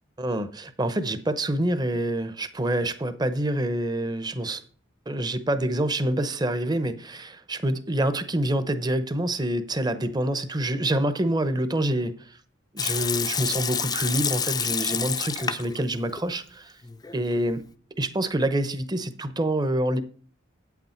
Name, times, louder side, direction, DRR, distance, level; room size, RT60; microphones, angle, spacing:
voice 1, 0.2-4.6 5.1-12.1 12.7-16.7 17.1-17.6 18.0-20.0, right 1 dB, 20° right, 0.8 m, -26 dB
Water tap faucet / Sink (filling or washing) / Liquid, 12.8-15.8 16.1-16.2 16.8-17.4, left 7 dB, 20° left, 0.5 m, -28 dB
8.9 x 8.3 x 4.4 m
head